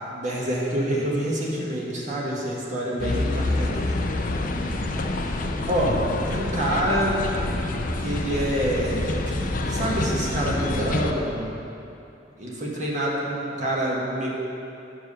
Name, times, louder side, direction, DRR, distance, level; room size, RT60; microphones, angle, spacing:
voice 1, 0.1-4.0 4.7-5.0 5.7-6.0 6.3-7.2 8.0-11.5 12.4-14.3, right 1 dB, 45° right, -4 dB, 1.4 m, -27 dB
sound 1, 3.0-11.1, left 2 dB, 50° left, 0.5 m, -27 dB
8.4 x 4.7 x 6.5 m, 2.8 s
head